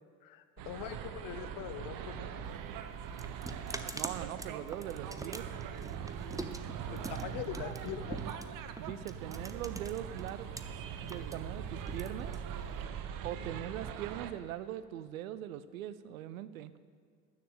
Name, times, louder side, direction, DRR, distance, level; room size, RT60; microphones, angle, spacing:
voice 1, 0.2-2.3 6.9-8.2, left 10 dB, 50° left, 10 dB, 1.1 m, -42 dB
sound 1, 0.6-14.3, right 8 dB, 50° right, 1.0 m, -41 dB
sound 2, 2.4-10.6 10.9-12.8, right 2 dB, 10° right, 0.8 m, -44 dB
voice 2, 3.9-5.5 8.8-10.5 11.0-12.3 13.2-16.7, right 12 dB, 75° right, 15 dB, 0.7 m, -41 dB
13.0 x 7.2 x 8.7 m, 2.1 s
figure-of-eight pair, 60°, 42 cm